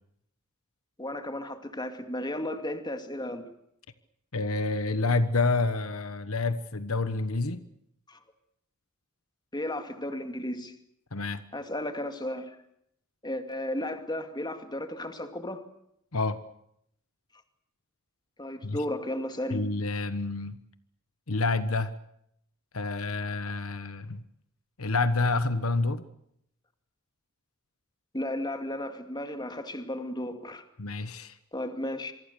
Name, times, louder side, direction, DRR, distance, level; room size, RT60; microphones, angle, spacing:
voice 1, 1.0-3.5 8.1-8.2 9.5-10.7 11.5-12.6 13.2-15.6 18.4-19.6 28.1-30.6 31.5-32.1, left 1 dB, 20° left, 7 dB, 2.5 m, -34 dB
voice 2, 4.3-7.6 11.1-11.4 16.1-16.4 18.6-18.8 19.5-20.6 21.3-21.9 22.7-24.2 24.8-26.0 30.8-31.4, left 3 dB, 70° left, 12 dB, 1.3 m, -28 dB
27.0 x 24.0 x 6.9 m, 0.75 s
head